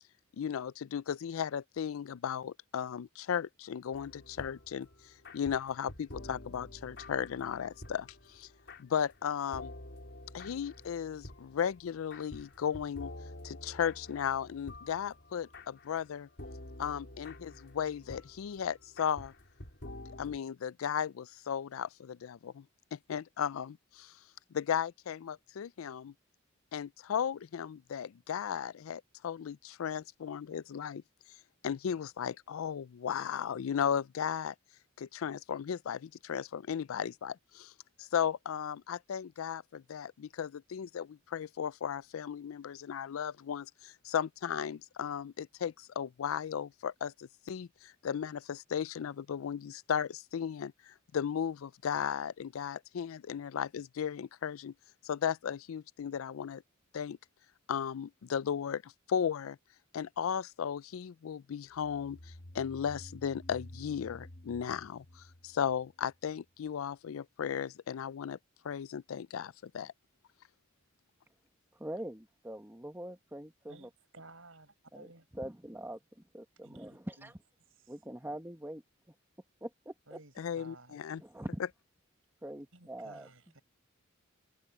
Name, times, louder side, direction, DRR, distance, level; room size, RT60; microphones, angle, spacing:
voice 1, 0.4-4.9 5.3-8.5 8.8-9.7 10.3-13.1 13.4-16.3 16.8-19.3 20.2-22.6 22.9-24.1 24.5-26.1 26.7-31.0 31.6-34.5 35.0-37.7 38.0-54.7 55.0-56.6 56.9-57.2 57.7-59.6 59.9-62.2 62.5-68.4 68.6-69.9 80.4-81.2, left 8 dB, 90° left, 0.4 m, -35 dB
sound 1, 3.9-20.4, left 1 dB, 60° left, 3.8 m, -49 dB
sound 2, 61.7-66.3, left 1 dB, 40° left, 1.0 m, -51 dB
voice 2, 71.8-73.9 74.9-75.1 75.3-77.3 77.9-78.8 79.6-80.2 81.2-81.6 82.4-83.3, right 1 dB, 10° right, 1.4 m, -43 dB
voice 3, 73.7-75.2 76.6-76.8 77.2-77.3 77.8-77.9 80.1-81.0 82.7-83.6, right 2 dB, 75° right, 6.5 m, -55 dB
head